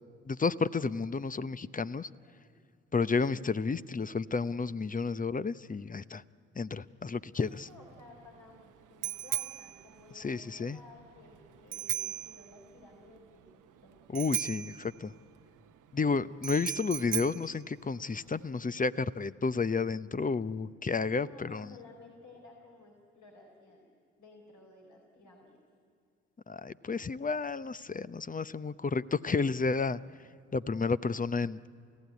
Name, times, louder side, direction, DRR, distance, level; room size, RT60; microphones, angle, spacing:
voice 1, 0.3-2.1 2.9-6.2 6.6-7.7 10.2-10.8 14.1-15.1 15.9-21.7 26.5-30.0 30.5-31.6, left 4 dB, 25° left, 16 dB, 0.7 m, -31 dB
voice 2, 2.0-2.5 7.4-13.4 13.8-14.0 21.1-23.9 24.2-25.6, left 2 dB, 60° left, -1 dB, 4.1 m, -55 dB
Bicycle bell, 7.4-18.5, right 11 dB, 70° right, 1.0 m, -39 dB
28.5 x 15.5 x 9.5 m, 2.4 s
hypercardioid pair, 40°, 32 cm